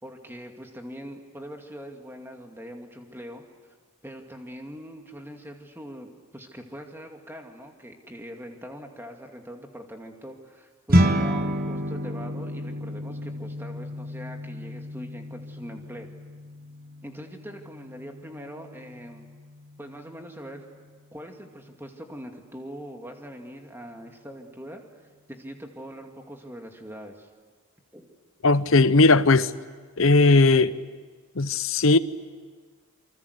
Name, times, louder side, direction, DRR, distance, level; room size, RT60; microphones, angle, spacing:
voice 1, 0.0-3.4 4.0-16.1 17.0-19.3 19.8-20.6 21.1-24.8 25.3-27.3 27.9-28.1, equal, 10° right, 2.4 m, -42 dB
sound 1, 10.9-20.4, equal, 40° right, 1.5 m, -30 dB
voice 2, 28.4-29.5 30.0-30.7 31.4-32.0, left 3 dB, 65° left, 0.8 m, -18 dB
28.0 x 25.0 x 8.2 m
head